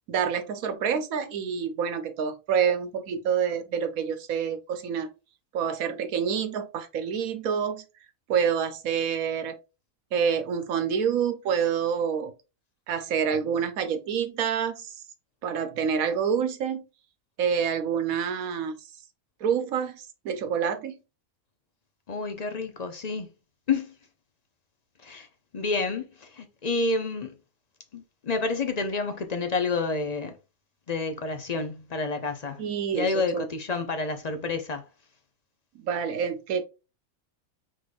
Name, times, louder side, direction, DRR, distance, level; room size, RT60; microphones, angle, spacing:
voice 1, 0.1-5.1 5.5-7.8 8.3-9.6 10.1-12.3 12.9-14.9 15.4-16.8 17.4-18.7 19.4-21.0 32.6-33.1 33.3-33.5 35.8-36.6, right 7 dB, 90° right, 1.2 m, -27 dB
voice 2, 22.1-23.3 23.7-23.9 25.0-25.3 25.5-27.4 27.9-30.4 30.9-34.8, left 3 dB, 45° left, 0.5 m, -29 dB
4.9 x 3.8 x 2.5 m
omnidirectional pair, 1.4 m